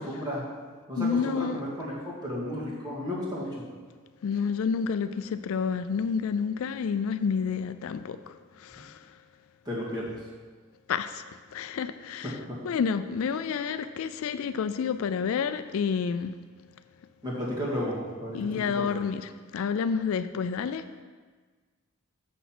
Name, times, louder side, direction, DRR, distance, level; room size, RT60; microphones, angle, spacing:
voice 1, 0.0-0.4 0.9-3.5 9.7-10.1 12.5-12.6 17.2-18.9, left 1 dB, 20° right, -6 dB, 2.0 m, -33 dB
voice 2, 1.0-1.6 4.2-9.1 10.9-12.4 12.6-16.4 18.3-21.0, left 6 dB, 70° left, 12 dB, 0.3 m, -29 dB
6.8 x 6.3 x 5.9 m, 1.5 s
head